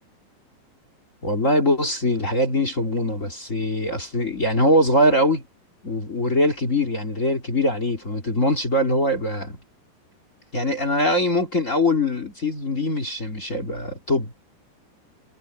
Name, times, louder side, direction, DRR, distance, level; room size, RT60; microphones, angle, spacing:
voice 1, 1.2-5.4 5.8-9.6 10.5-14.3, left 1 dB, 25° left, 1.9 m, -22 dB
omnidirectional pair, 5.2 m